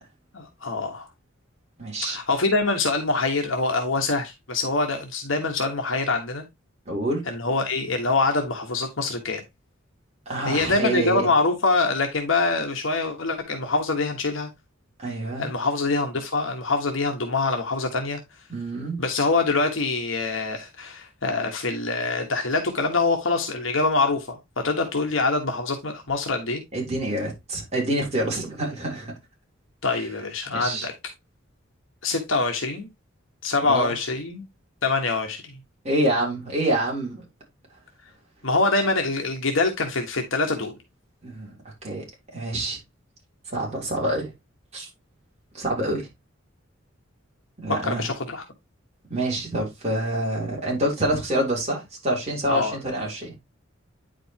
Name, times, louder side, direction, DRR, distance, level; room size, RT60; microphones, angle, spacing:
voice 1, 0.3-1.1 2.0-6.4 7.3-9.4 10.4-14.5 15.4-18.2 19.0-26.6 29.8-30.9 32.0-32.9 33.4-34.4 34.8-35.5 38.4-40.7 47.8-48.4 52.5-52.7, left 3 dB, 70° left, 1.4 m, -24 dB
voice 2, 1.8-2.2 6.9-7.2 10.2-11.3 15.0-15.5 18.5-19.0 26.7-29.1 30.5-30.9 33.7-33.9 35.8-37.2 41.2-42.0 42.3-42.8 43.5-44.3 44.7-44.9 45.5-46.1 47.6-48.1 49.1-53.3, right 1 dB, 35° right, 3.5 m, -27 dB
9.5 x 5.2 x 2.9 m
head